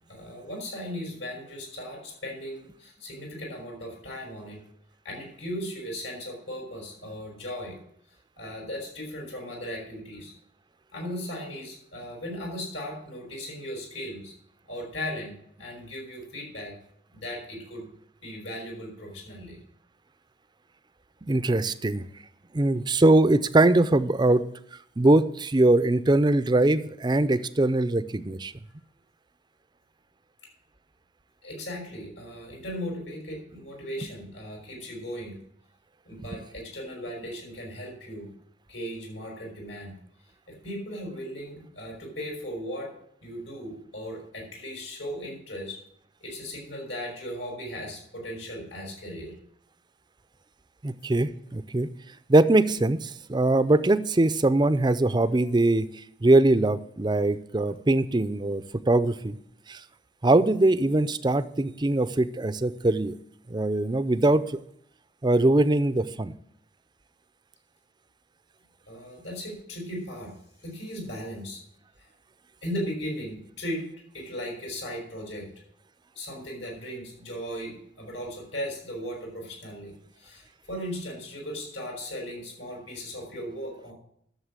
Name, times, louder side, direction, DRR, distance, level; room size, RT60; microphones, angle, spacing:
voice 1, 0.1-4.6 5.0-7.7 8.4-10.3 10.9-14.3 14.7-15.3 15.6-16.7 17.1-17.9 18.2-19.6 31.4-35.4 36.1-38.3 38.7-39.9 40.5-42.9 43.2-45.8 46.2-49.3 68.9-70.3 70.6-71.6 72.6-73.9 74.1-75.5 76.2-83.9, equal, 80° left, 0 dB, 5.6 m, -37 dB
voice 2, 21.2-22.0 22.5-24.4 25.0-28.5 50.8-51.9 52.3-55.9 56.2-59.3 59.7-59.8 60.2-63.1 63.5-64.6 65.2-66.3, right 2 dB, 25° right, 13 dB, 0.5 m, -22 dB
11.5 x 7.1 x 7.5 m, 0.71 s
head